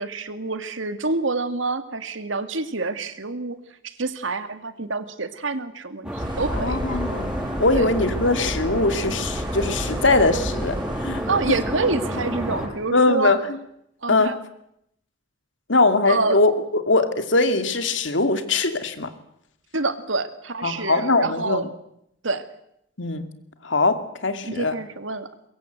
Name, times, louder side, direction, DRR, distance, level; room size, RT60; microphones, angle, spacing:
voice 1, 0.0-3.6 3.8-6.8 7.7-7.8 11.3-13.3 14.0-14.4 16.1-16.4 19.7-21.7 22.2-22.4 24.4-25.3, right 3 dB, 80° right, 10 dB, 2.1 m, -27 dB
sound 1, 6.0-12.7, equal, 5° right, 7.8 m, -30 dB
sound 2, 6.2-11.8, equal, 25° right, 4.1 m, -33 dB
voice 2, 6.5-7.3 7.6-11.3 12.9-13.6 14.1-14.4 15.7-19.1 20.6-21.6 23.0-23.3 23.6-24.7, left 3 dB, 70° left, 9 dB, 2.4 m, -21 dB
23.0 x 22.5 x 8.0 m, 0.77 s
head